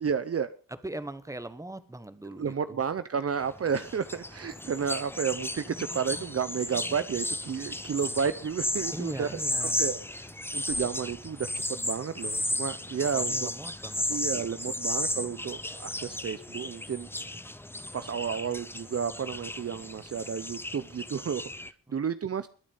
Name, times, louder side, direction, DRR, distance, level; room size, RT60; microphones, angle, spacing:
voice 1, 0.0-0.5 2.4-13.5 14.1-17.4 17.9-22.5, right 7 dB, 45° right, 12 dB, 0.7 m, -32 dB
voice 2, 0.8-2.7 8.9-9.8 13.1-14.4 21.9-22.0, right 1 dB, 10° right, 12 dB, 1.3 m, -40 dB
sound 1, 3.4-21.7, left 1 dB, 5° left, 0.7 m, -34 dB
21.5 x 8.9 x 5.4 m, 0.40 s
wide cardioid pair, 125°, 34 cm